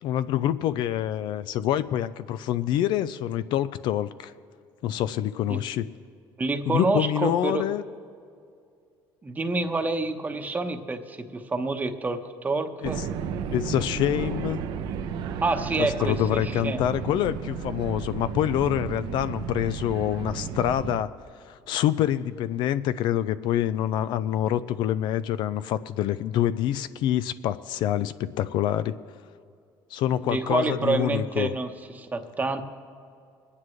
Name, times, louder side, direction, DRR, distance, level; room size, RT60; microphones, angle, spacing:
voice 1, 0.0-4.3 4.8-5.9 6.7-7.8 12.8-12.9 13.5-14.6 15.8-21.1 21.5-28.9 29.9-31.5, left 11 dB, 65° left, 14 dB, 0.4 m, -26 dB
voice 2, 6.4-7.7 9.2-13.0 15.4-16.8 30.2-32.6, right 3 dB, 20° right, 6 dB, 1.0 m, -28 dB
sound 1, 12.8-21.0, right 7 dB, 70° right, 0.7 m, -33 dB
25.0 x 9.8 x 3.1 m, 2.4 s
cardioid pair, 120°, 8 cm